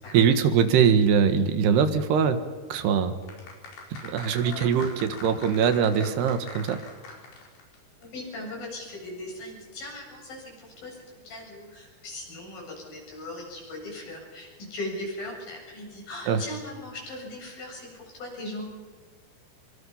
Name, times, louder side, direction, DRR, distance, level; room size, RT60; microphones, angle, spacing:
voice 1, 0.1-2.4 2.7-3.1 4.1-6.8 16.3-16.4, right 7 dB, 85° right, 9 dB, 3.6 m, -22 dB
sound 1, 3.2-7.8 8.0-8.1, left 3 dB, 90° left, 6.8 m, -42 dB
voice 2, 8.0-11.0 11.2-18.6, left 1 dB, 60° left, -1 dB, 9.4 m, -39 dB
26.5 x 24.0 x 5.7 m, 1.5 s
omnidirectional pair, 4.7 m